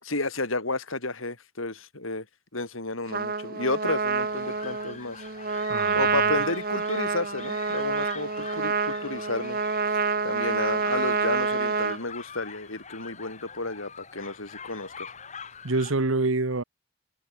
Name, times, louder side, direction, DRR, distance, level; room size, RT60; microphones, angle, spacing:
voice 1, 0.0-2.3 2.5-5.2 5.9-10.0 10.2-15.1, left 2 dB, 75° left, 4.6 m, -32 dB
Trumpet, 3.1-12.0, right 4 dB, 45° right, 1.1 m, -27 dB
sound 1, 4.2-15.9, left 6 dB, 35° left, 5.6 m, -44 dB
voice 2, 5.7-6.1 15.6-16.6, right 2 dB, 75° right, 1.3 m, -26 dB
head